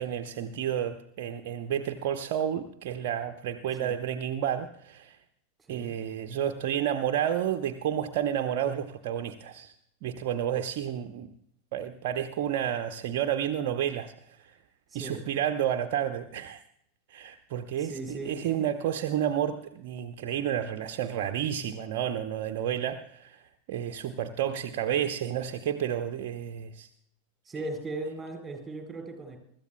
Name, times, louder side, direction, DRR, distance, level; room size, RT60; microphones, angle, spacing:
voice 1, 0.0-5.2 5.7-9.7 10.0-11.3 11.7-14.4 14.9-16.6 17.1-23.4 23.7-26.9, right 10 dB, 50° right, 7 dB, 0.7 m, -31 dB
voice 2, 14.9-15.2 17.8-18.5 27.5-29.4, right 2 dB, 15° right, 3 dB, 4.2 m, -38 dB
24.0 x 13.0 x 2.2 m, 0.70 s
figure-of-eight pair, 90°, 0 cm